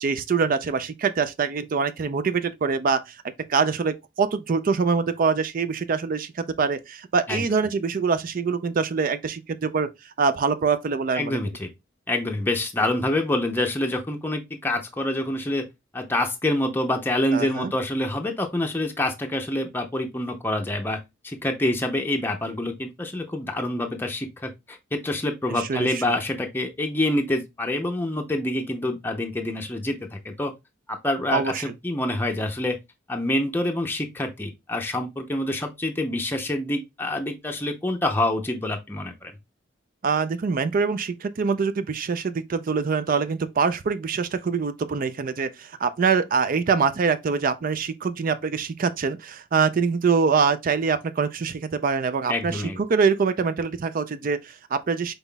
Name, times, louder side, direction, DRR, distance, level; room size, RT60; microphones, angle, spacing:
voice 1, 0.0-3.2 3.5-11.4 17.3-17.7 25.6-26.0 31.3-31.6 40.0-55.1, right 5 dB, 45° right, 0.4 m, -24 dB
voice 2, 11.1-11.7 12.1-15.7 15.9-30.5 30.9-32.8 33.1-39.3 52.3-52.8, left 1 dB, 10° left, 0.6 m, -26 dB
5.5 x 4.0 x 2.2 m
head